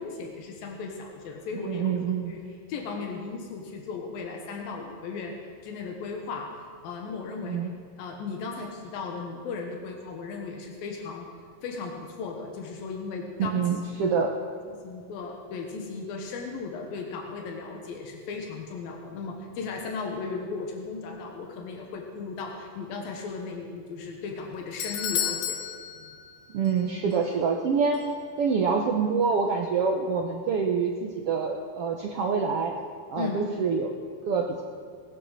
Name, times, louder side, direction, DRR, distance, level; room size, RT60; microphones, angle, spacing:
voice 1, 0.0-1.9 2.2-2.4 2.7-6.5 6.8-7.7 8.0-11.3 11.6-13.7 14.0-14.1 14.8-25.6 33.2-33.4, left 4 dB, 90° left, 2 dB, 3.2 m, -36 dB
voice 2, 1.5-2.3 7.4-7.7 13.4-14.3 26.5-28.0 28.4-32.7 33.1-33.9 34.3-34.6, right 5 dB, 75° right, 1 dB, 1.4 m, -26 dB
Doorbell, 24.3-26.8 27.1-27.2 27.9-28.0, left 9 dB, 75° left, 2.0 m, -32 dB
19.5 x 10.0 x 6.6 m, 2.1 s
omnidirectional pair, 4.0 m